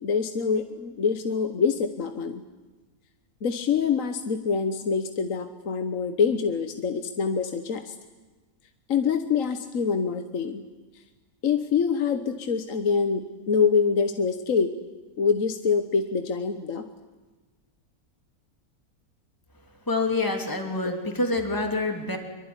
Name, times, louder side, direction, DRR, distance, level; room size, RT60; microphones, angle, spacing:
voice 1, 0.0-2.4 3.4-7.9 8.9-10.6 11.4-14.7 15.2-16.8 20.8-20.9, left 6 dB, 60° left, 8 dB, 1.6 m, -25 dB
voice 2, 19.9-22.2, left 2 dB, 15° left, 3 dB, 3.0 m, -26 dB
24.5 x 23.5 x 9.8 m, 1.2 s
omnidirectional pair, 1.6 m